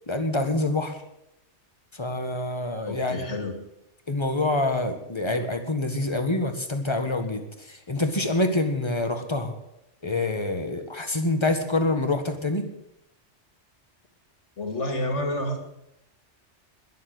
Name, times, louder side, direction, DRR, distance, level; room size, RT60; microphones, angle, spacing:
voice 1, 0.1-1.0 2.0-3.3 4.1-7.4 7.9-9.5 10.0-12.6, left 2 dB, 25° left, 6 dB, 1.7 m, -26 dB
voice 2, 2.8-3.6 14.6-15.6, left 1 dB, 80° left, 5 dB, 2.8 m, -29 dB
21.0 x 7.6 x 8.0 m, 0.84 s
omnidirectional pair, 1.2 m